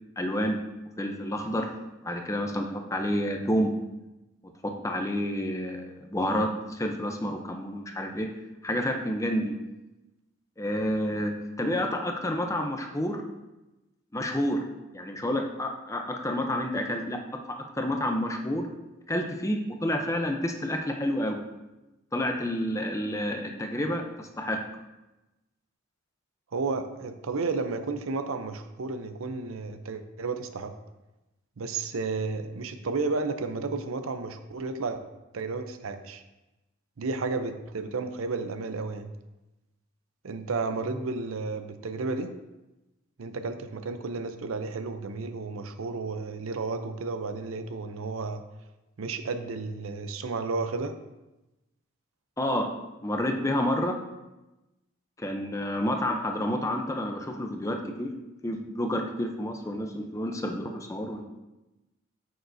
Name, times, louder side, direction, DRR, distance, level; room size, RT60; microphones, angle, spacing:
voice 1, 0.2-0.6 1.0-1.7 2.0-3.7 4.6-8.3 8.6-9.5 10.6-13.2 14.1-14.6 14.9-17.2 17.5-18.7 19.1-21.4 22.1-24.6 52.4-52.7 53.0-54.0 55.2-58.1 58.4-61.2, equal, 15° left, 3 dB, 0.6 m, -29 dB
voice 2, 26.5-30.7 31.6-35.0 35.3-36.2 37.0-39.1 40.2-42.3 43.2-48.4 49.0-51.0, right 3 dB, 85° right, 8 dB, 0.6 m, -32 dB
8.8 x 6.6 x 2.7 m, 1.0 s
head